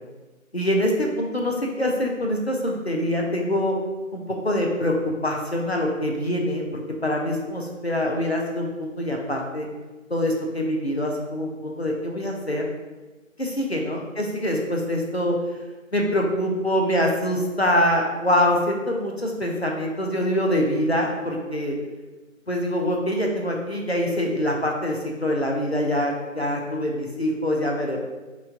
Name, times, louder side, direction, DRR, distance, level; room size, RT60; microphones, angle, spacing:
voice 1, 0.5-3.8 4.1-5.0 5.2-6.6 7.0-9.7 10.1-12.7 13.4-15.4 15.9-21.8 22.5-28.0, left 1 dB, 50° left, -1 dB, 0.5 m, -24 dB
3.0 x 2.4 x 3.6 m, 1.2 s
figure-of-eight pair, 180°, 41 cm